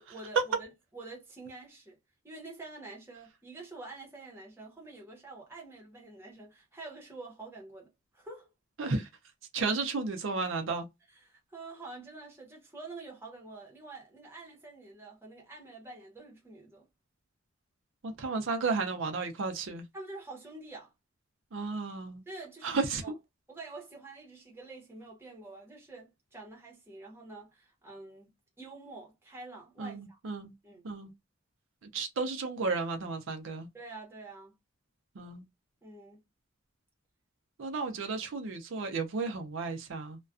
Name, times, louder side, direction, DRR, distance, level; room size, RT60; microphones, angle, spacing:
voice 1, 0.1-0.7 0.9-2.0 2.2-8.5 11.1-16.9 19.9-20.9 22.3-23.2 23.5-30.2 30.6-30.9 33.7-34.6 35.8-36.2, right 2 dB, 10° right, 0.8 m, -47 dB
voice 2, 9.5-10.9 18.0-19.8 21.5-22.2 22.6-23.1 29.8-30.5 30.8-31.1 31.9-33.7 35.2-35.4 37.6-40.2, right 4 dB, 70° right, 0.5 m, -33 dB
2.4 x 2.2 x 2.4 m
head